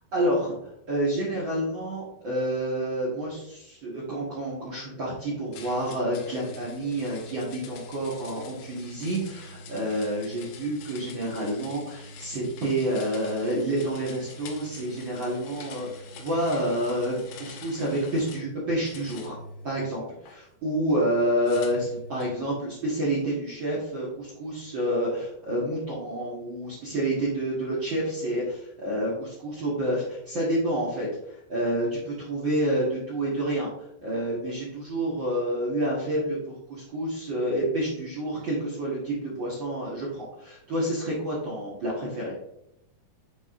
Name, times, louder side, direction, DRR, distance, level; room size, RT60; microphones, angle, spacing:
voice 1, 0.1-19.4 19.6-33.7 34.0-36.4 36.7-42.3, right 1 dB, 70° right, -7 dB, 1.1 m, -29 dB
sound 1, 5.5-18.5 18.9-20.4 21.5-22.4, left 2 dB, 75° left, 1.9 m, -44 dB
10.0 x 4.2 x 2.6 m, 0.78 s
omnidirectional pair, 4.7 m